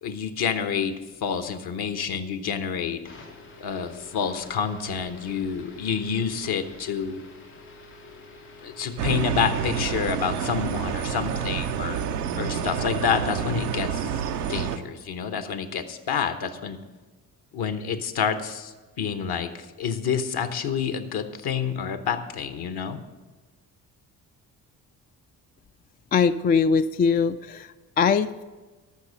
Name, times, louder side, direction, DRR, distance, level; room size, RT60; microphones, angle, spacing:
voice 1, 0.0-3.0 3.6-7.2 8.6-12.0 12.3-14.2 14.5-16.8 17.5-23.0, left 7 dB, 55° left, 10 dB, 1.1 m, -28 dB
sound 1, 3.0-11.1, left 3 dB, 85° left, 2.1 m, -47 dB
sound 2, 9.0-14.8, right 7 dB, 90° right, 0.7 m, -28 dB
voice 2, 26.1-28.4, left 6 dB, 25° left, 11 dB, 0.3 m, -22 dB
13.5 x 6.2 x 5.5 m, 1.3 s
hypercardioid pair, 45°, 45 cm